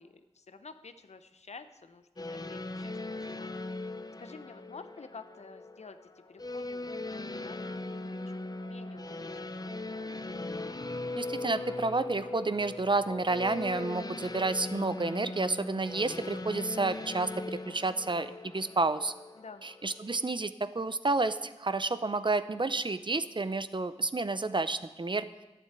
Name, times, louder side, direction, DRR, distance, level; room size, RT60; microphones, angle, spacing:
voice 1, 0.0-3.6 4.2-6.0 6.3-7.7 8.0-9.6 19.4-19.6, left 4 dB, 85° left, 11 dB, 0.7 m, -50 dB
sound 1, 2.2-20.2, left 2 dB, 35° left, 0.7 m, -39 dB
sound 2, 8.6-13.3, right 13 dB, 80° right, 1.9 m, -60 dB
voice 2, 11.1-19.1 19.6-25.3, right 3 dB, 45° right, 13 dB, 0.7 m, -30 dB
12.0 x 6.9 x 9.0 m, 1.1 s
cardioid pair, 40°, 11 cm